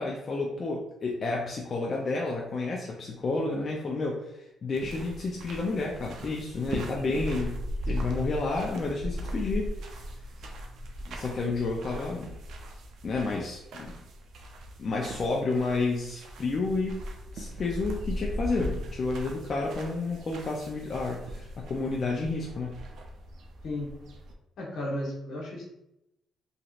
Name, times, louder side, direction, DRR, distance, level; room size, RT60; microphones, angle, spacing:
voice 1, 0.0-7.6 7.8-9.7 11.1-12.3 13.0-14.0 14.8-17.0 17.3-22.8, left 3 dB, 45° left, -2 dB, 0.4 m, -30 dB
sound 1, 4.7-24.3, equal, 75° right, 0.4 m, -38 dB
voice 2, 23.6-24.0 24.6-25.6, left 1 dB, 75° left, -2 dB, 1.0 m, -34 dB
3.0 x 2.7 x 2.4 m, 0.85 s
cardioid pair, 90°, 0 cm